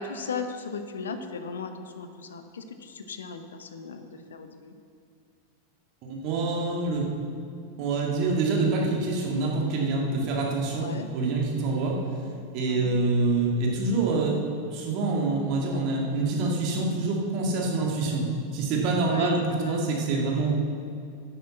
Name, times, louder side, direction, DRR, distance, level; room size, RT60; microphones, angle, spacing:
voice 1, 0.0-4.7 10.7-11.1 12.7-12.9 19.0-19.8, left 4 dB, 65° left, 8 dB, 0.9 m, -36 dB
voice 2, 6.0-7.1 7.8-12.0 12.5-14.4 14.7-18.3 18.5-20.5, right 3 dB, 40° right, -1 dB, 2.2 m, -26 dB
11.0 x 8.3 x 6.0 m, 2.4 s
figure-of-eight pair, 90°, 0 cm